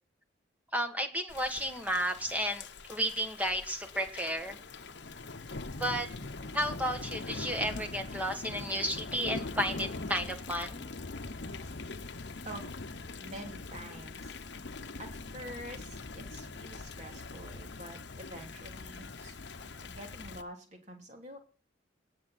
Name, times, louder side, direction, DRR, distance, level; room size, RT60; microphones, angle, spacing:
voice 1, 0.7-4.6 5.7-6.1 6.5-10.8, equal, 10° right, 6 dB, 1.4 m, -33 dB
Thunder / Rain, 1.3-20.4, left 3 dB, 65° left, 1.0 m, -42 dB
voice 2, 12.4-14.7 15.0-19.4 19.7-21.4, right 1 dB, 40° right, 3 dB, 3.0 m, -47 dB
18.5 x 7.1 x 4.3 m, 0.40 s
head